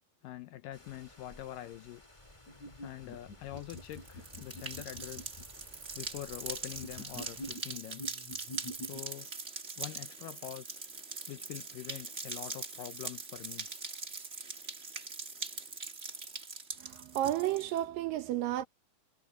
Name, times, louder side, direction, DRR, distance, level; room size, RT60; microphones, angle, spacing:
voice 1, 0.2-2.0 2.8-5.3 5.9-8.0 8.8-9.3 9.8-10.8 11.3-13.7, left 14 dB, 75° left, 2.0 m, -45 dB
sound 1, 0.7-7.6, left 1 dB, 10° left, 2.4 m, -57 dB
sound 2, 2.5-5.5 6.7-9.0, left 1 dB, 50° left, 3.9 m, -46 dB
sound 3, 3.6-17.8, right 3 dB, 30° right, 1.4 m, -42 dB
voice 2, 16.8-18.7, right 13 dB, 70° right, 2.4 m, -32 dB
omnidirectional pair, 4.5 m